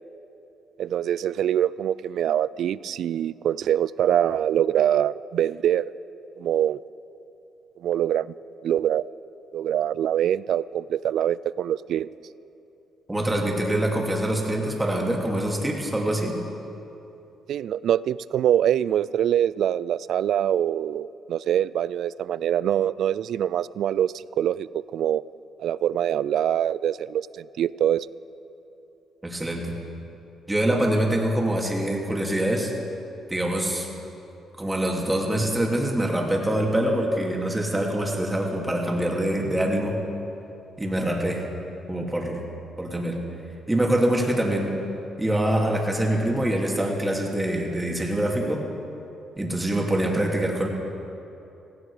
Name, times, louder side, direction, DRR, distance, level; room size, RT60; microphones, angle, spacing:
voice 1, 0.8-5.8 6.4-6.8 7.8-8.3 8.6-9.1 9.5-12.1 17.5-25.2 25.6-28.1, right 10 dB, 75° right, 19 dB, 0.3 m, -24 dB
voice 2, 13.1-16.4 29.2-29.7 30.5-32.7 33.3-33.9 34.6-40.0 40.8-41.4 41.9-42.4 42.8-43.2 43.7-44.8 45.2-48.6 49.4-50.7, right 1 dB, 10° right, -1 dB, 2.8 m, -24 dB
17.0 x 16.5 x 5.0 m, 2.9 s
cardioid pair, 90°, 0 cm